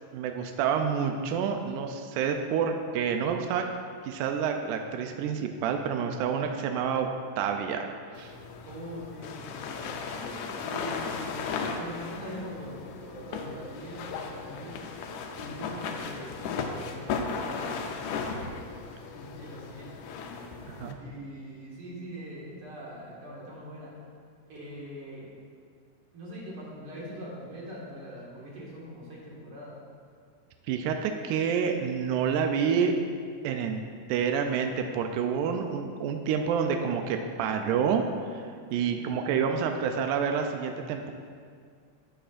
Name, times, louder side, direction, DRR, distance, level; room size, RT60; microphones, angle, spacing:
voice 1, 0.1-3.7 4.0-7.1 7.4-7.8 8.2-8.3 20.8-21.0 30.7-33.0 33.4-33.8 34.1-38.0 38.3-38.4 38.7-41.1, right 7 dB, 85° right, 4 dB, 2.1 m, -28 dB
sound 1, 8.1-20.9, left 5 dB, 80° left, 1.9 m, -36 dB
voice 2, 8.7-14.8 15.4-23.9 24.5-25.3 26.1-29.8 38.8-39.2, equal, 50° right, -6 dB, 2.4 m, -43 dB
12.5 x 7.9 x 2.5 m, 2.1 s
omnidirectional pair, 3.5 m